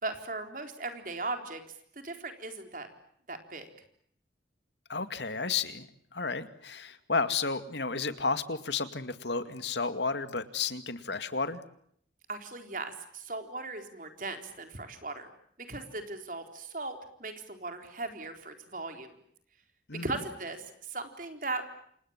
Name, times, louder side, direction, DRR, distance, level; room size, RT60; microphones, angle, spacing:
voice 1, 0.0-1.6 2.0-2.9 3.3-3.7 12.3-15.3 15.7-19.2 20.0-21.7, right 3 dB, 50° right, 6 dB, 4.0 m, -38 dB
voice 2, 4.9-5.9 6.1-11.6 19.9-20.2, left 4 dB, 80° left, 11 dB, 2.2 m, -32 dB
29.0 x 27.5 x 7.3 m, 0.68 s
head